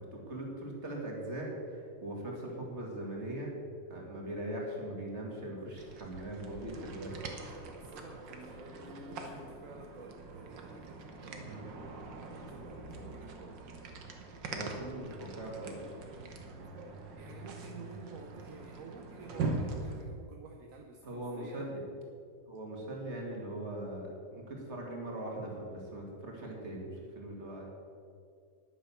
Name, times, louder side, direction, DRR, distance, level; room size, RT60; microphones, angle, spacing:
voice 1, 0.0-3.5 3.9-7.7 11.4-11.9 14.5-15.8 21.0-21.8 22.5-27.7, right 1 dB, 40° right, -1 dB, 2.7 m, -41 dB
sound 1, 5.8-20.0, right 3 dB, 90° right, 1.9 m, -42 dB
voice 2, 7.7-11.5 12.3-13.7 17.1-21.7, right 4 dB, 55° right, 2 dB, 1.2 m, -51 dB
10.5 x 9.6 x 7.1 m, 2.3 s
omnidirectional pair, 1.9 m